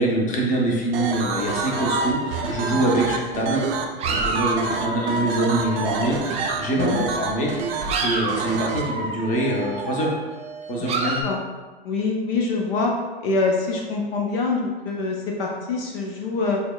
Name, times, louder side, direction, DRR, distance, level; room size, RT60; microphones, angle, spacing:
voice 1, 0.0-3.7 4.1-6.2 6.6-10.1 10.7-11.2, right 1 dB, 25° left, -2 dB, 0.8 m, -24 dB
sound 1, 0.9-8.8, right 5 dB, 65° right, 0.6 m, -28 dB
sound 2, 1.4-6.8 7.3-11.2, right 2 dB, 20° right, 0.4 m, -30 dB
voice 2, 11.0-11.4 11.8-12.9 13.2-16.6, left 3 dB, 60° left, 0 dB, 0.7 m, -25 dB
6.1 x 2.1 x 2.3 m, 1.3 s
hypercardioid pair, 105°, 32 cm